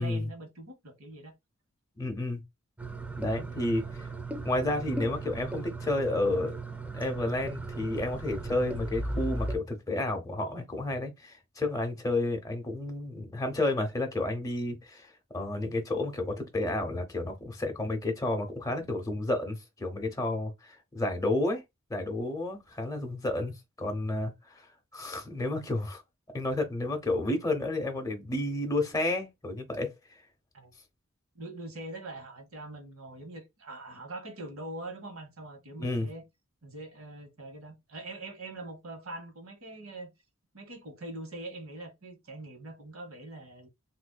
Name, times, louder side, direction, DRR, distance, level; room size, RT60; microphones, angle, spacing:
voice 1, 0.0-1.3 3.4-3.6 30.5-30.7 31.3-36.2 36.6-40.1 40.5-43.7, right 2 dB, 85° right, 1.2 m, -43 dB
voice 2, 2.0-2.4 3.2-4.1 4.4-6.6 6.9-21.6 21.9-24.7 24.9-26.0 26.3-29.9 35.8-36.1, left 2 dB, 15° left, 0.8 m, -31 dB
sound 1, 2.8-9.6, right 2 dB, 5° right, 0.4 m, -37 dB
3.8 x 2.6 x 2.2 m
head